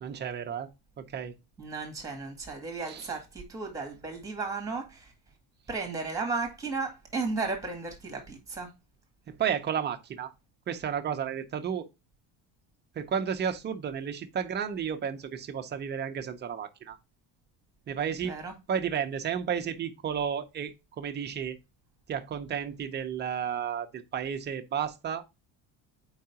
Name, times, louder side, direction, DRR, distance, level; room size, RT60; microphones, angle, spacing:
voice 1, 0.0-0.7 1.0-1.3 2.9-3.1 9.3-10.3 10.7-11.9 13.0-17.0 17.9-18.3 18.7-21.6 22.1-25.2, right 8 dB, 25° right, 0.5 m, -32 dB
voice 2, 1.6-5.1 5.7-8.7 18.2-18.5, right 4 dB, 5° right, 1.7 m, -34 dB
4.7 x 3.7 x 5.6 m
cardioid pair, 160°, 45 cm